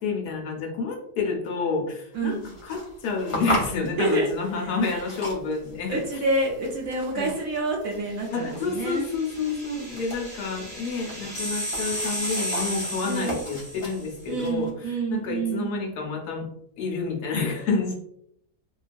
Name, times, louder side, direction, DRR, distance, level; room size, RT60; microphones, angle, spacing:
voice 1, 0.0-6.0 7.2-7.3 8.3-14.7 15.1-16.5 16.8-18.0, left 4 dB, 75° left, 1 dB, 1.2 m, -29 dB
sound 1, 2.1-14.7, left 1 dB, 50° left, 0.3 m, -37 dB
voice 2, 4.0-4.3 4.6-5.0 5.9-9.1 13.0-13.4 14.3-15.7, right 2 dB, 65° right, 0 dB, 0.9 m, -28 dB
sound 2, 8.2-14.2, equal, 10° right, 0.6 m, -34 dB
3.0 x 2.3 x 2.5 m, 0.70 s
omnidirectional pair, 1.7 m